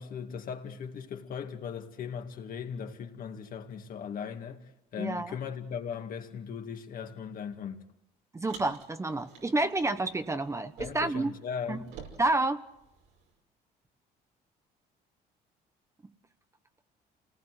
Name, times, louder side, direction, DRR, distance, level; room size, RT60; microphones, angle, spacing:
voice 1, 0.0-7.8 10.8-11.9, left 7 dB, 55° left, 2.3 m, -38 dB
voice 2, 5.0-5.3 8.3-11.3 11.7-11.8 12.2-12.6, right 2 dB, 15° right, 1.0 m, -29 dB
Car, 8.4-11.3 11.5-13.3, right 6 dB, 85° right, 5.5 m, -50 dB
27.5 x 19.0 x 7.9 m
cardioid pair, 110°, 17 cm